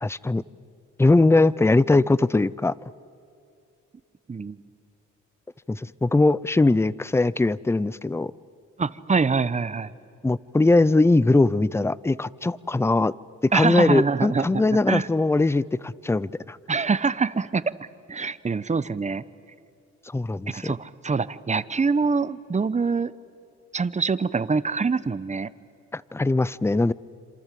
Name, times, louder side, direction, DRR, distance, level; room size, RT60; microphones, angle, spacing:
voice 1, 0.0-0.4 1.0-2.7 5.7-8.3 10.2-13.1 13.4-16.6 20.1-20.7 25.9-26.9, left 2 dB, 10° left, 21 dB, 0.6 m, -21 dB
voice 2, 8.8-9.9 13.5-15.1 16.7-19.2 20.5-23.1 23.7-25.5, right 4 dB, 25° right, 15 dB, 1.0 m, -25 dB
27.5 x 27.0 x 7.7 m, 2.5 s
cardioid pair, 90°, 30 cm